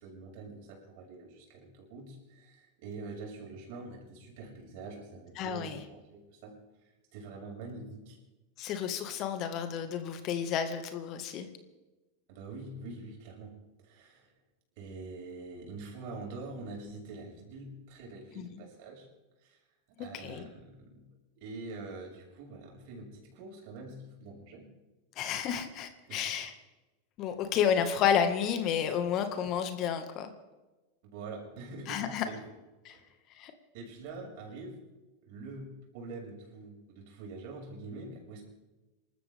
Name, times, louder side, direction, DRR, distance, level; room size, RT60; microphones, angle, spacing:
voice 1, 0.0-6.5 7.1-8.2 12.3-13.5 13.8-14.3 14.8-19.1 19.4-19.6 20.0-21.1 21.3-24.7 26.1-26.4 31.0-32.4 32.9-33.0 33.7-34.8 35.2-38.4, right 3 dB, 55° right, 0 dB, 6.7 m, -45 dB
voice 2, 5.4-5.8 8.6-11.5 18.4-18.5 20.2-20.5 25.2-26.5 27.2-30.3 31.9-32.3 32.9-33.0 33.4-33.5, left 8 dB, 45° left, 7 dB, 2.0 m, -31 dB
28.0 x 13.5 x 3.7 m, 1.1 s
hypercardioid pair, 90°, 0 cm